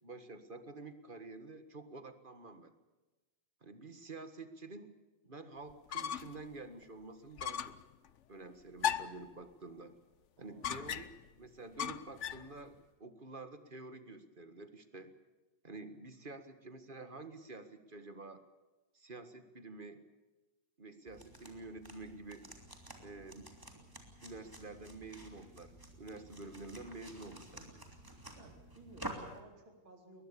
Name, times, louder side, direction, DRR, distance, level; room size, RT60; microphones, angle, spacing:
voice 1, 0.0-2.7 3.6-5.0 5.2-7.8 8.3-9.9 10.4-15.1 15.6-18.4 18.9-20.0 20.8-22.5 23.0-23.6 24.2-27.8, right 3 dB, 25° right, 10 dB, 1.7 m, -49 dB
sound 1, 5.7-6.4 6.8-6.9 7.4-7.8 8.8-9.3 10.6-11.3 11.8-12.5, left 9 dB, 75° left, 0.6 m, -37 dB
voice 2, 10.4-10.8 28.3-30.3, right 2 dB, 65° right, 3 dB, 4.9 m, -57 dB
sound 2, 21.1-29.4, right 1 dB, 10° right, 3.0 m, -50 dB
22.0 x 20.5 x 7.0 m, 1.1 s
omnidirectional pair, 2.4 m